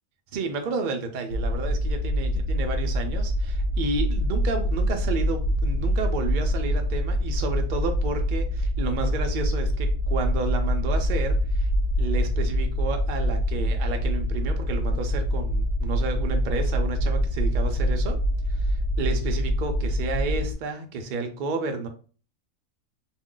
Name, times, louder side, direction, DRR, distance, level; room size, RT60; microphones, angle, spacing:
voice 1, 0.3-11.7 12.0-18.2 18.5-21.9, right 3 dB, 75° right, 5 dB, 0.4 m, -31 dB
sound 1, 1.3-20.5, equal, 85° left, 1.1 m, -25 dB
2.4 x 2.1 x 3.6 m, 0.39 s
omnidirectional pair, 1.4 m